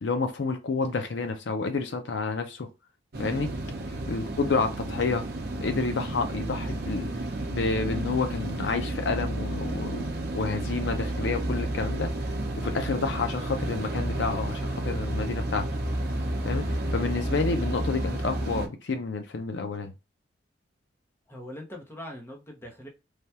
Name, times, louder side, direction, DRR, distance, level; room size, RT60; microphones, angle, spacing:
voice 1, 0.0-2.7 3.2-3.5 4.1-5.3 5.6-7.1 7.5-10.0 10.3-12.1 12.6-15.7 16.4-19.9, left 4 dB, 70° left, 0.5 m, -29 dB
sound 1, 3.1-18.7, right 1 dB, 60° right, 0.7 m, -31 dB
voice 2, 21.3-22.9, left 1 dB, 15° left, 0.8 m, -42 dB
3.3 x 2.3 x 2.7 m
head